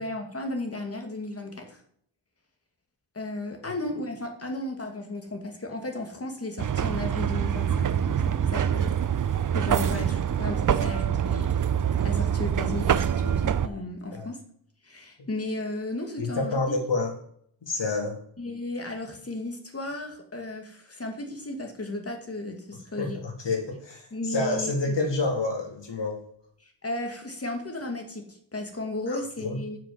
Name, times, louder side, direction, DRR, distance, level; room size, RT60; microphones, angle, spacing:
voice 1, 0.0-1.8 3.1-11.6 12.0-14.4 14.8-16.8 18.4-23.2 24.1-24.7 26.6-29.8, left 2 dB, 30° left, 3 dB, 2.4 m, -35 dB
sound 1, 6.6-13.7, right 9 dB, 40° right, 0.5 m, -25 dB
voice 2, 16.2-17.1 17.6-18.2 23.0-24.0 24.3-26.2 29.1-29.6, left 3 dB, 60° left, 2 dB, 3.0 m, -28 dB
9.5 x 6.4 x 7.4 m, 0.64 s
wide cardioid pair, 115°, 49 cm